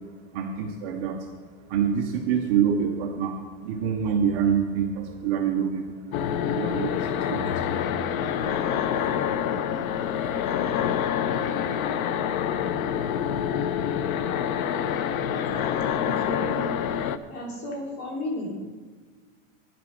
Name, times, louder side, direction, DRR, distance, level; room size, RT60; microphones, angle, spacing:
voice 1, 0.3-1.2 1.7-6.0 6.4-7.6, right 7 dB, 25° right, 2 dB, 0.5 m, -26 dB
sound 1, 6.1-17.2, left 8 dB, 75° left, 0.8 m, -26 dB
voice 2, 16.0-16.6 17.3-18.6, left 1 dB, 50° left, 0 dB, 3.2 m, -33 dB
9.8 x 9.2 x 6.2 m, 1.5 s
supercardioid pair, 170°, 42 cm